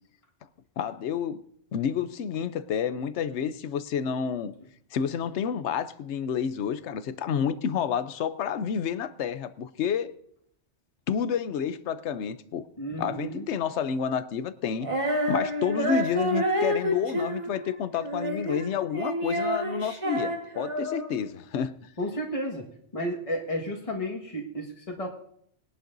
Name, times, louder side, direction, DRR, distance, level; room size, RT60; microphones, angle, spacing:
voice 1, 0.8-1.4 1.7-4.5 4.9-10.1 11.1-12.7 13.0-21.8, left 7 dB, 75° left, 1.0 m, -29 dB
voice 2, 12.8-13.5 22.0-22.7 22.9-25.1, equal, 30° left, 1.7 m, -32 dB
Female singing, 14.8-21.2, equal, 30° right, 1.5 m, -29 dB
21.0 x 11.0 x 2.6 m
omnidirectional pair, 1.2 m